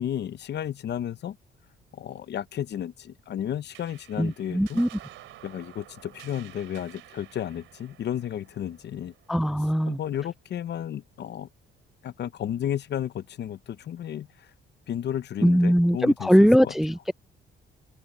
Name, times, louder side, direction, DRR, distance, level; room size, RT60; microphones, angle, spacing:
voice 1, 0.0-1.4 1.9-4.8 5.4-9.1 9.6-11.5 12.0-14.5 14.9-16.7, left 10 dB, 60° left, 0.8 m, -33 dB
sound 1, 3.7-10.5, right 14 dB, 85° right, 3.7 m, -51 dB
voice 2, 4.2-4.9 9.3-10.0 15.4-17.1, equal, ahead, 0.4 m, -20 dB
cardioid pair, 90°, 20 cm